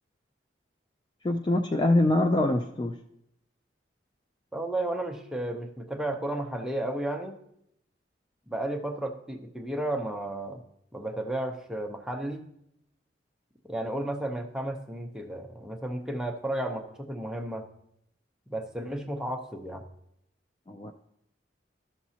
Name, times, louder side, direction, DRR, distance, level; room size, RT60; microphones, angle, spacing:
voice 1, 1.2-3.0 20.7-20.9, left 1 dB, 25° left, 6 dB, 0.3 m, -24 dB
voice 2, 4.5-7.4 8.5-10.6 10.9-12.4 13.7-17.7 18.5-19.8, right 1 dB, 5° right, 2 dB, 0.7 m, -33 dB
13.0 x 6.0 x 2.8 m, 0.77 s
head